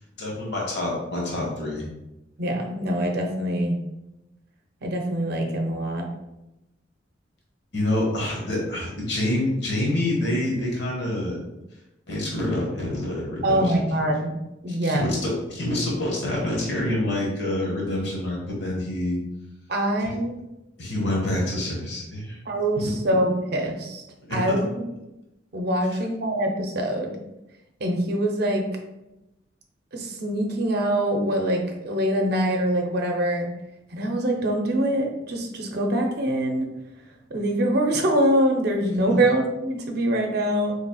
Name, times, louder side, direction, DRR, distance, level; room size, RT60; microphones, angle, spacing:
voice 1, 0.2-1.8 7.7-11.4 12.1-13.6 14.8-19.2 20.8-22.4 22.8-22.9 24.3-24.4 25.9-26.0 39.1-39.2, left 1 dB, 65° left, -2 dB, 1.1 m, -27 dB
voice 2, 2.4-3.8 4.8-6.1 13.4-14.4 14.6-15.1 19.7-20.4 22.5-24.0 24.3-24.8 25.5-27.2 27.8-28.8 29.9-33.5 33.9-36.7 37.3-40.8, right 1 dB, 60° right, 2 dB, 0.6 m, -24 dB
4.0 x 3.2 x 2.3 m, 0.94 s
head